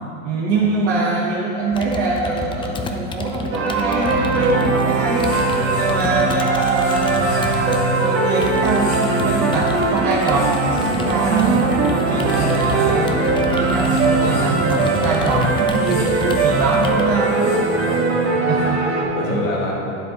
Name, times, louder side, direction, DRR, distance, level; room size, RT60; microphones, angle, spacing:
voice 1, 0.2-5.3 5.7-13.2 13.5-17.4 18.5-18.8 19.2-19.4, right 3 dB, 70° right, -7 dB, 1.5 m, -23 dB
Computer keyboard, 1.7-7.8 8.4-17.2, left 5 dB, 15° left, 0.4 m, -31 dB
sound 1, 3.5-19.0, right 3 dB, 35° right, 1.5 m, -20 dB
sound 2, 4.5-18.4, left 1 dB, 50° left, 1.7 m, -35 dB
voice 2, 14.0-14.5 15.0-15.4 17.1-19.7, left 1 dB, 85° left, -3 dB, 2.0 m, -30 dB
9.6 x 7.8 x 3.0 m, 2.7 s
hypercardioid pair, 100°, 38 cm